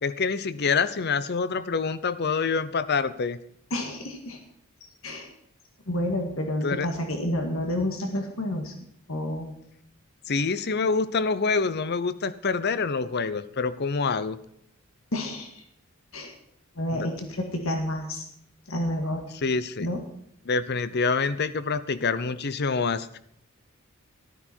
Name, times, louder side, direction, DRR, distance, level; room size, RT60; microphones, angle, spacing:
voice 1, 0.0-3.4 6.6-6.9 10.3-14.4 16.9-17.1 19.4-19.9 20.5-23.2, left 4 dB, 50° left, 14 dB, 0.7 m, -26 dB
voice 2, 3.7-4.4 5.0-5.3 5.9-8.7 9.1-9.5 15.1-15.5 16.1-16.3 16.8-18.3 18.7-19.2 19.8-20.0, left 1 dB, 70° left, 4 dB, 2.0 m, -29 dB
14.0 x 12.5 x 4.5 m, 0.71 s
head